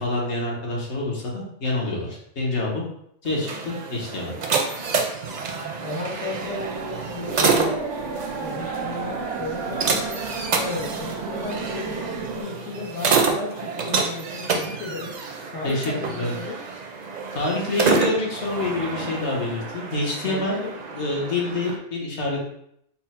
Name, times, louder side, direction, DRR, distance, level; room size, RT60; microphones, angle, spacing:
voice 1, 0.0-2.8 3.2-4.3 15.6-16.4 17.3-20.5 20.9-22.5, left 2 dB, 70° left, -2 dB, 1.3 m, -27 dB
sound 1, 3.2-21.8, right 4 dB, 55° right, 0.5 m, -28 dB
voice 2, 5.8-7.8 8.4-15.1 15.5-16.6 20.2-20.7, left 3 dB, 90° left, -1 dB, 1.3 m, -34 dB
sound 2, 6.4-12.4, right 4 dB, 85° right, 1.1 m, -32 dB
4.3 x 2.1 x 4.3 m, 0.72 s
omnidirectional pair, 1.2 m